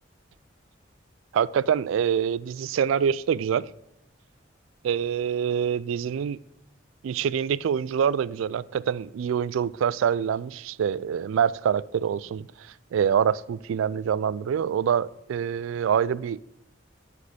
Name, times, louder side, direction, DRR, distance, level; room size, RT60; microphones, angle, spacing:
voice 1, 1.3-3.7 4.8-6.4 7.0-12.5 12.9-16.4, right 8 dB, 85° right, 0.3 m, -25 dB
7.4 x 6.5 x 8.0 m
head